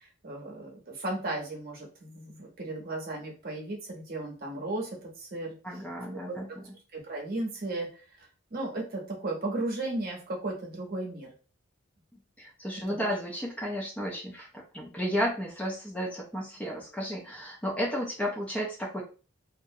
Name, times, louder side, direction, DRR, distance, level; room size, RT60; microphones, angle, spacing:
voice 1, 0.2-5.6 6.3-6.4 6.9-11.3 12.9-13.1, right 2 dB, 45° right, -1 dB, 0.8 m, -35 dB
voice 2, 5.6-6.5 12.4-19.0, equal, 5° left, -3 dB, 0.4 m, -33 dB
2.4 x 2.1 x 2.6 m, 0.35 s
head